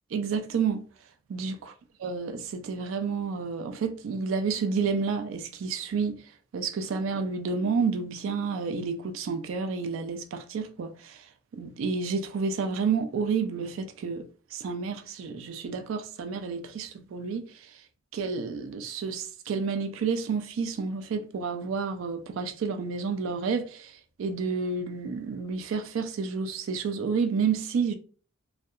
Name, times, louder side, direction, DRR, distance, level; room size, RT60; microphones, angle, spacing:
voice 1, 0.1-0.8 1.3-1.7 2.0-6.2 6.5-11.3 11.5-17.8 18.1-27.9, right 5 dB, 70° right, 0.3 m, -30 dB
2.7 x 2.2 x 2.3 m
head